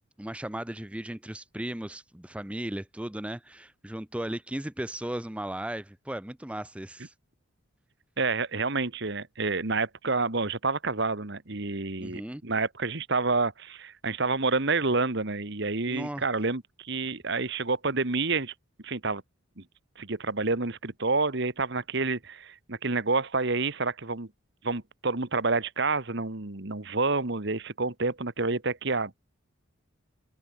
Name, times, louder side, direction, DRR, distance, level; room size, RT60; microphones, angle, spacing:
voice 1, 0.2-7.1 12.0-12.4 15.9-16.2, right 1 dB, 5° right, 0.5 m, -36 dB
voice 2, 8.2-18.5 18.8-19.2 19.6-19.7 20.0-24.3 24.6-29.1, right 3 dB, 55° right, 1.6 m, -28 dB
open air
head